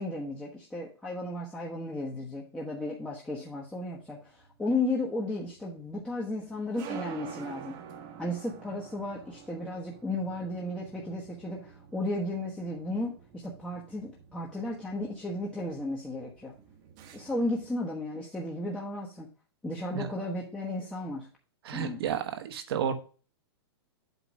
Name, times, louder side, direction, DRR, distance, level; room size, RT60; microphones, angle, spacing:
voice 1, 0.0-7.8 8.2-16.5 17.1-19.3 19.6-21.3 21.7-22.0, left 2 dB, 5° left, -4 dB, 1.1 m, -34 dB
sound 1, 4.1-17.8, right 8 dB, 35° right, 1.1 m, -48 dB
voice 2, 21.6-22.9, right 8 dB, 70° right, 8 dB, 1.2 m, -31 dB
8.2 x 3.0 x 6.2 m, 0.38 s
hypercardioid pair, 140°, 13 cm